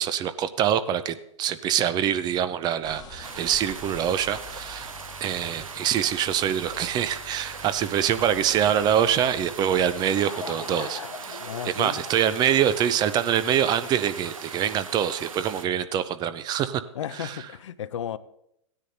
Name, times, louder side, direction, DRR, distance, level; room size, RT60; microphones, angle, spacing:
voice 1, 0.0-4.9 5.2-16.8 17.2-17.4, right 9 dB, 25° right, 0.5 m, -25 dB
sound 1, 2.8-9.9, left 3 dB, 25° left, 1.2 m, -47 dB
sound 2, 3.2-15.7, right 5 dB, 85° right, 0.8 m, -40 dB
Laughter / Crowd, 9.6-13.4, left 5 dB, 80° left, 1.0 m, -40 dB
voice 2, 11.4-12.0 16.9-18.2, left 10 dB, 65° left, 0.6 m, -34 dB
16.5 x 9.8 x 2.7 m
figure-of-eight pair, 110°, 17 cm